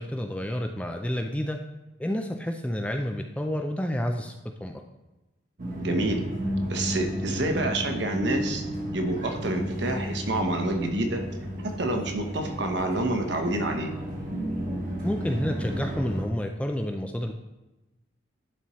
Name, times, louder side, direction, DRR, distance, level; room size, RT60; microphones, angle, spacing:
voice 1, 0.0-1.6 2.0-4.3 4.6-4.8 15.0-17.3, equal, 5° left, 4 dB, 0.3 m, -29 dB
sound 1, 5.6-16.2, equal, 45° right, 1.2 m, -33 dB
voice 2, 5.8-6.2 6.7-8.6 8.9-11.2 11.6-13.9, right 2 dB, 60° right, 3 dB, 1.0 m, -28 dB
11.0 x 4.3 x 3.1 m, 1.0 s
head